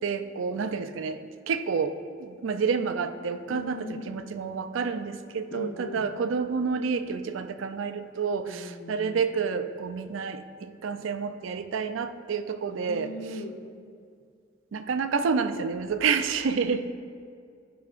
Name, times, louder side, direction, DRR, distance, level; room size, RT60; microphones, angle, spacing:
voice 1, 0.0-13.1 14.7-16.9, right 5 dB, 80° right, 10 dB, 0.4 m, -29 dB
voice 2, 3.5-4.2 5.5-6.1 8.5-9.2 12.7-13.6, left 1 dB, 65° left, 5 dB, 0.7 m, -39 dB
12.5 x 5.7 x 2.5 m, 2.2 s
head